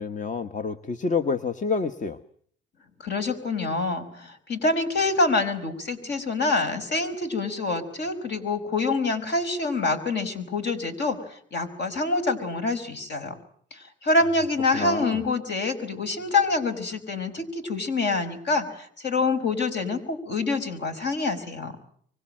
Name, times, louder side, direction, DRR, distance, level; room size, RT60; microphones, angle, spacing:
voice 1, 0.0-2.2 14.7-15.2, left 4 dB, 40° left, 10 dB, 1.4 m, -28 dB
voice 2, 3.0-13.4 13.7-21.8, left 3 dB, 60° left, 7 dB, 5.1 m, -26 dB
25.0 x 24.5 x 7.7 m, 0.62 s
cardioid pair, 90°, 20 cm